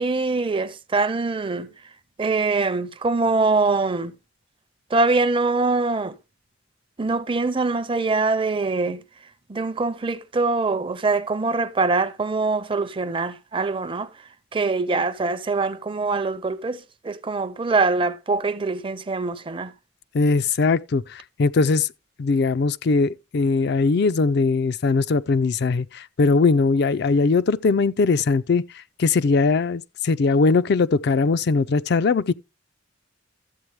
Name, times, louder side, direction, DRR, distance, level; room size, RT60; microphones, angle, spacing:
voice 1, 0.0-1.7 2.2-4.1 4.9-6.1 7.0-9.0 9.5-14.1 14.5-19.7, right 3 dB, 25° right, 0.5 m, -23 dB
voice 2, 20.1-21.9 22.2-28.6 29.0-32.3, left 4 dB, 60° left, 0.4 m, -20 dB
13.5 x 7.8 x 3.2 m
head